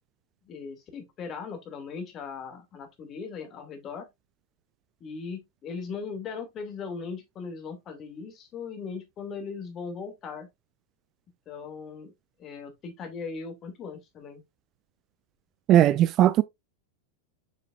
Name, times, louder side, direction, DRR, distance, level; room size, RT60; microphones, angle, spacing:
voice 1, 0.4-4.1 5.0-10.5 11.5-12.1 12.4-14.4, left 5 dB, 30° left, 2.5 m, -38 dB
voice 2, 15.7-16.4, right 12 dB, 35° right, 0.4 m, -18 dB
7.3 x 6.6 x 2.5 m
figure-of-eight pair, 90°, 0 cm